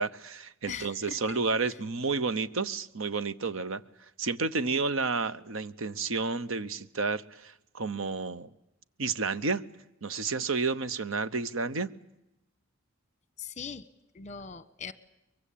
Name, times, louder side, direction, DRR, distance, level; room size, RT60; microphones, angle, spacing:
voice 1, 0.0-3.8 4.2-8.5 9.0-9.6 10.0-11.9, right 4 dB, 70° right, 0.9 m, -31 dB
voice 2, 0.7-1.4 1.7-1.8 13.4-13.9 14.1-14.9, left 6 dB, 35° left, 1.2 m, -40 dB
23.5 x 23.0 x 8.6 m
head